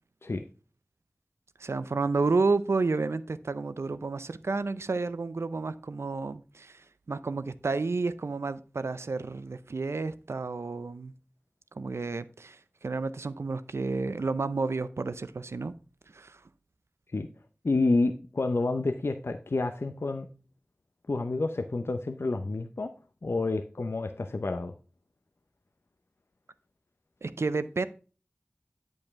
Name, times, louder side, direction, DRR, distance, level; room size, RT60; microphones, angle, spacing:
voice 1, 1.6-11.1 11.7-15.7 16.1-16.4 27.2-27.9, right 3 dB, 85° right, 0.5 m, -31 dB
voice 2, 17.6-20.3 21.1-22.9 23.2-24.7, left 3 dB, 70° left, 0.6 m, -29 dB
8.6 x 5.3 x 3.5 m
wide cardioid pair, 45°, 4 cm